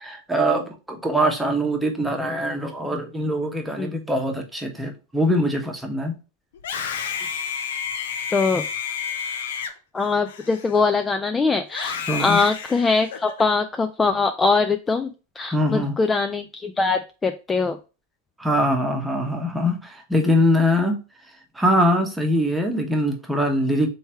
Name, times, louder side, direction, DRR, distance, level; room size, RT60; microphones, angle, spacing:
voice 1, 0.0-6.1 12.1-12.4 15.5-16.0 18.4-21.0 21.5-23.9, equal, 5° right, 2 dB, 1.0 m, -22 dB
Screaming, 6.5-11.1 11.7-13.4, left 7 dB, 80° left, 0.6 m, -31 dB
voice 2, 8.3-8.6 9.9-15.1 15.4-17.8, left 4 dB, 15° left, 7 dB, 0.3 m, -22 dB
3.3 x 3.2 x 4.4 m, 0.31 s
supercardioid pair, 130°, 0 cm